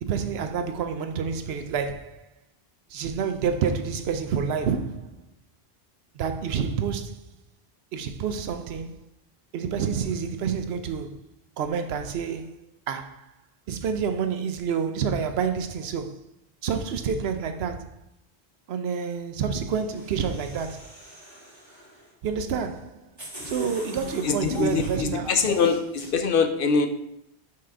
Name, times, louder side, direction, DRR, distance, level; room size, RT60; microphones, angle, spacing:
voice 1, 0.0-2.3 2.9-5.2 6.2-7.2 7.9-9.0 9.5-11.2 11.6-12.6 12.9-13.3 13.7-16.2 16.6-17.9 18.7-21.0 22.2-23.1 23.5-25.3, right 6 dB, 70° right, 0.8 m, -28 dB
sound 1, 19.7-22.1 22.8-22.9 23.2-26.1, left 1 dB, 25° right, 1.8 m, -41 dB
voice 2, 24.2-26.9, left 5 dB, 60° left, 0.7 m, -23 dB
5.7 x 3.7 x 4.4 m
omnidirectional pair, 1.1 m